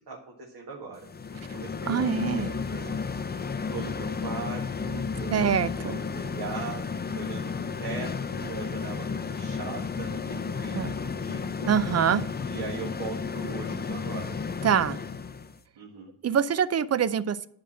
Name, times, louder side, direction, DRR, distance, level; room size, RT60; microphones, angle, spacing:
voice 1, 0.1-1.1 1.3-6.9 7.1-11.7 12.4-14.4 15.8-16.1, right 5 dB, 65° right, -1 dB, 1.8 m, -40 dB
sound 1, 1.0-15.6, left 5 dB, 25° left, 0.6 m, -33 dB
voice 2, 1.9-2.5 5.3-6.0 10.7-10.9 11.7-12.2 14.6-15.0 16.2-17.5, right 8 dB, 40° right, 16 dB, 0.5 m, -24 dB
10.5 x 4.3 x 7.4 m, 0.70 s
cardioid pair, 105°, 43 cm